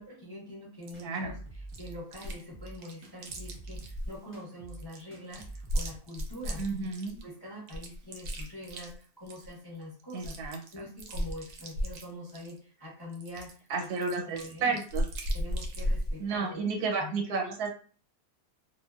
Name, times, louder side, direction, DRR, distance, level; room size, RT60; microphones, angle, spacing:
voice 1, 0.0-1.3 1.8-6.7 7.2-14.8 15.3-17.2, left 1 dB, 30° left, -6 dB, 0.4 m, -44 dB
sound 1, 0.9-6.0, right 2 dB, 10° right, 0.6 m, -46 dB
Chewing mastication, 0.9-1.0 1.7-2.4 2.7-4.2 4.7-7.2 7.7-9.5 9.8-9.9 10.1-12.6 13.1-16.2, equal, 70° right, 0.9 m, -35 dB
voice 2, 1.0-1.3 6.6-7.2 10.1-10.8 13.7-15.0 16.2-17.7, right 4 dB, 85° right, 1 dB, 1.2 m, -32 dB
2.5 x 2.2 x 2.3 m, 0.42 s
omnidirectional pair, 1.6 m